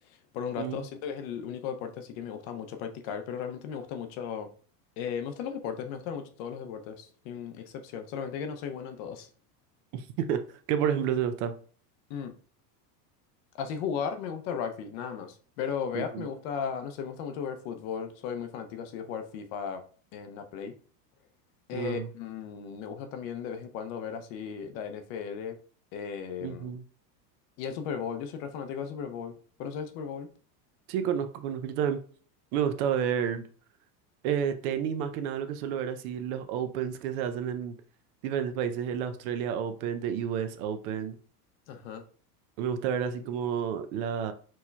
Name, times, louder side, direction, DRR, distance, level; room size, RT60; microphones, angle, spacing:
voice 1, 0.1-4.5 5.0-9.3 12.1-12.3 13.6-19.8 20.1-20.7 21.7-25.6 25.9-26.7 27.6-30.3 41.7-42.0, left 7 dB, 55° left, 0.6 m, -36 dB
voice 2, 9.9-10.4 10.7-11.5 15.9-16.3 21.7-22.1 26.4-26.8 30.9-32.0 32.5-33.5 34.2-37.8 38.2-41.2 42.6-44.3, right 8 dB, 60° right, 0.6 m, -30 dB
4.6 x 2.8 x 2.2 m
supercardioid pair, 130°, 49 cm